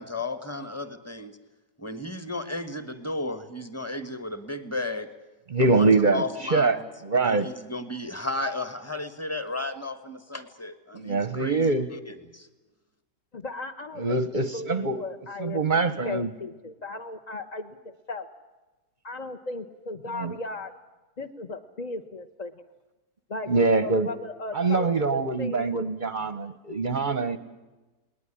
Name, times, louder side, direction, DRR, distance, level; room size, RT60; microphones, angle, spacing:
voice 1, 0.0-1.3 1.8-5.1 5.6-6.8 7.2-12.5, left 2 dB, 10° left, 11 dB, 1.1 m, -34 dB
voice 2, 5.5-6.8 7.0-7.5 10.9-11.9 14.0-15.0 15.4-16.3 20.2-20.3 23.5-24.1 24.5-27.4, right 3 dB, 40° right, 13 dB, 0.7 m, -24 dB
voice 3, 13.3-18.3 19.0-20.7 21.2-22.5 23.3-25.7, left 2 dB, 40° left, 5 dB, 0.6 m, -37 dB
20.0 x 19.0 x 10.0 m, 1.1 s
omnidirectional pair, 1.8 m